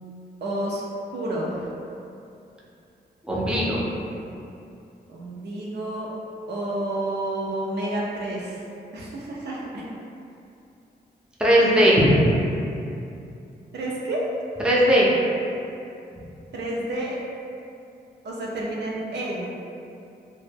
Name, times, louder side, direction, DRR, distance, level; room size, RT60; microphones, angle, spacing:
voice 1, 0.4-0.8 1.1-1.7 5.1-6.1 6.5-8.6 8.9-9.8 13.7-14.2 16.5-17.2 18.2-19.4, right 1 dB, 80° right, -4 dB, 0.5 m, -30 dB
voice 2, 3.3-3.8 11.4-12.2 14.6-15.1, equal, 5° right, -6 dB, 0.4 m, -18 dB
2.1 x 2.0 x 3.2 m, 2.6 s
wide cardioid pair, 100°, 17 cm